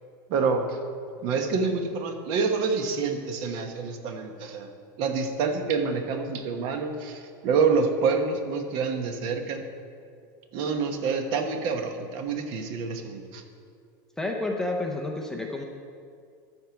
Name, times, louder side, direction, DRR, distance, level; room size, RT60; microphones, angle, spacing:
voice 1, 0.3-0.8 1.2-4.7 5.0-9.6 10.5-13.4, right 5 dB, 45° right, 5 dB, 1.1 m, -27 dB
voice 2, 14.2-15.6, left 2 dB, 5° left, 1 dB, 0.6 m, -30 dB
13.5 x 4.6 x 7.0 m, 2.3 s
supercardioid pair, 160°, 11 cm